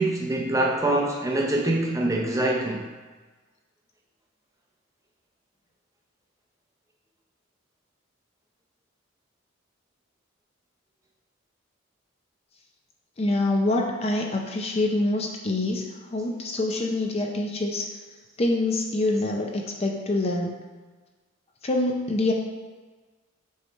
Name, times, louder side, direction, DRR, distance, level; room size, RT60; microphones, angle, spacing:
voice 1, 0.0-2.9, right 1 dB, 15° right, -1 dB, 0.6 m, -24 dB
voice 2, 13.2-15.8 16.1-17.9 18.4-20.5 21.6-22.3, left 2 dB, 30° left, 1 dB, 0.4 m, -25 dB
6.8 x 3.2 x 4.3 m, 1.3 s
head